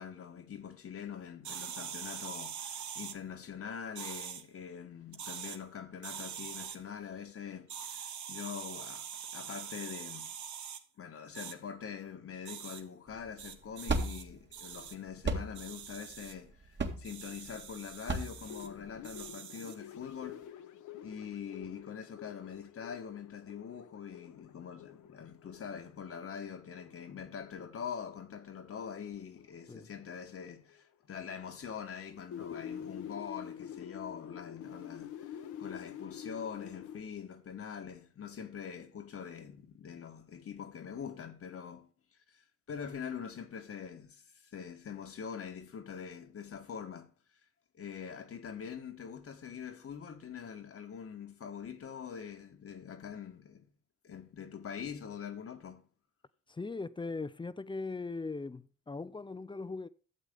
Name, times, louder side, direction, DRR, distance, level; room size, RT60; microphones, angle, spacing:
voice 1, 0.0-9.1 9.3-10.4 11.0-20.5 21.0-35.3 35.6-41.9 42.3-44.2 44.5-47.1 47.7-53.7 54.0-55.9, left 7 dB, 50° left, 1.3 m, -44 dB
sound 1, 1.4-3.2 4.0-4.4 5.1-5.6 6.0-6.8 7.7-10.8 11.3-11.5 12.5-12.8 13.4-14.2 14.5-14.9 15.6-16.3 17.0-18.7 19.0-19.8, right 8 dB, 70° right, 1.5 m, -43 dB
sound 2, 13.1-19.3, right 2 dB, 35° right, 2.0 m, -36 dB
sound 3, 18.4-29.1 29.4-29.7 30.0-30.3 30.7-30.8 31.3-31.5 32.0-37.0, left 9 dB, 80° left, 1.1 m, -48 dB
voice 2, 56.5-59.9, left 3 dB, 15° left, 0.6 m, -39 dB
12.0 x 7.9 x 3.6 m
cardioid pair, 90°, 30 cm